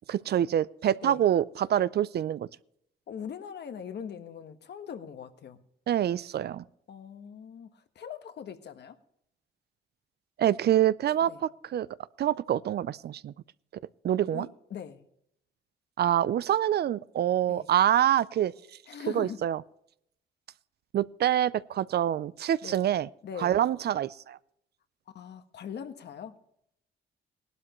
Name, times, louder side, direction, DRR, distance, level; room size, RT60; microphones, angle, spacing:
voice 1, 0.1-2.5 5.9-6.6 10.4-11.9 12.2-13.3 14.0-14.5 16.0-18.5 19.1-19.6 20.9-23.1 23.4-24.4, right 11 dB, 55° right, 0.5 m, -26 dB
voice 2, 3.1-5.6 6.9-9.0 11.3-11.4 14.3-15.0 17.5-17.7 18.9-19.4 22.6-22.8 23.2-23.6 25.1-26.4, left 7 dB, 60° left, 1.3 m, -41 dB
18.0 x 12.0 x 3.1 m
cardioid pair, 90°, 20 cm